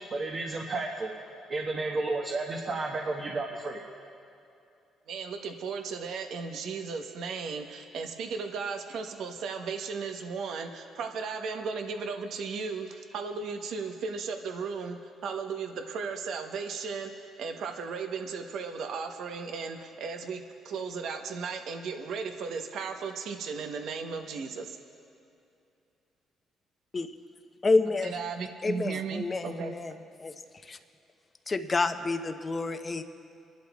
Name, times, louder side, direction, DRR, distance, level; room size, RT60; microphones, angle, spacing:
voice 1, 0.1-1.1 1.5-3.8, right 3 dB, 50° right, -1 dB, 1.2 m, -32 dB
voice 2, 5.1-12.9 13.1-17.1 17.4-24.7 28.0-29.7, right 5 dB, 70° right, 5 dB, 1.0 m, -35 dB
voice 3, 27.6-28.2 28.6-29.9 30.2-30.3 30.7-30.8 31.5-33.0, left 3 dB, 35° left, 7 dB, 0.8 m, -28 dB
27.5 x 11.5 x 2.4 m, 2.6 s
supercardioid pair, 65°, 0 cm